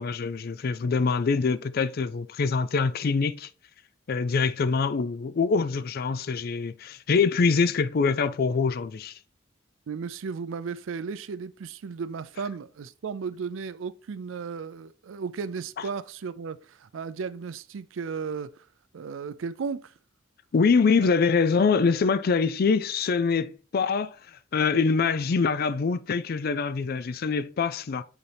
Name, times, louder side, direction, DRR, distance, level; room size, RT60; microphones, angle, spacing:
voice 1, 0.0-3.5 4.1-9.1 20.5-24.1 24.5-28.0, left 5 dB, 50° left, 0.4 m, -24 dB
voice 2, 9.9-18.7 18.9-19.9 21.0-21.1, right 5 dB, 85° right, 0.4 m, -35 dB
8.0 x 4.1 x 3.4 m
head